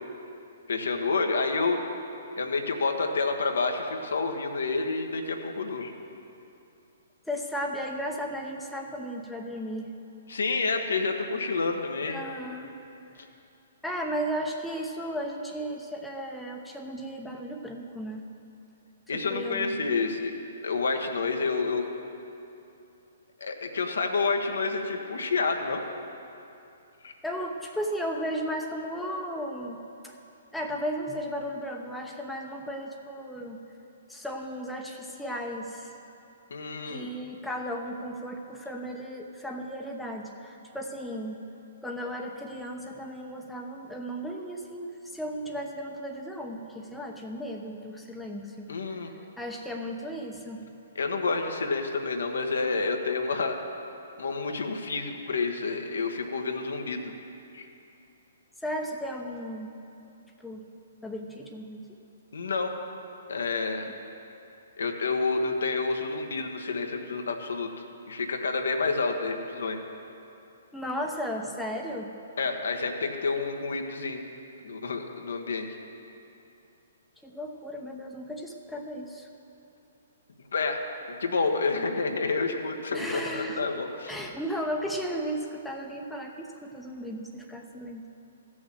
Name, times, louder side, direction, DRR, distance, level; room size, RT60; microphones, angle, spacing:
voice 1, 0.7-1.8 2.4-5.9 10.3-12.2 19.1-20.3 20.6-21.9 23.4-25.8 27.0-27.1 36.5-37.1 48.7-49.1 50.9-53.6 54.2-57.1 57.5-57.7 62.3-62.7 63.3-63.9 64.8-69.8 72.4-74.2 74.6-75.7 80.5-80.8 81.2-84.1, left 4 dB, 70° left, 4 dB, 1.2 m, -29 dB
voice 2, 7.2-9.9 12.1-12.7 13.2-13.3 13.8-18.2 19.1-20.1 27.2-29.8 30.0-30.2 30.5-33.6 34.1-35.9 36.8-41.4 41.8-48.7 49.4-50.7 58.6-59.7 60.4-60.7 61.0-61.9 70.7-72.2 77.2-79.3 82.9-83.7 84.1-88.0, equal, 5° left, 0 dB, 0.9 m, -35 dB
14.5 x 6.3 x 7.5 m, 2.7 s
figure-of-eight pair, 125°, 0 cm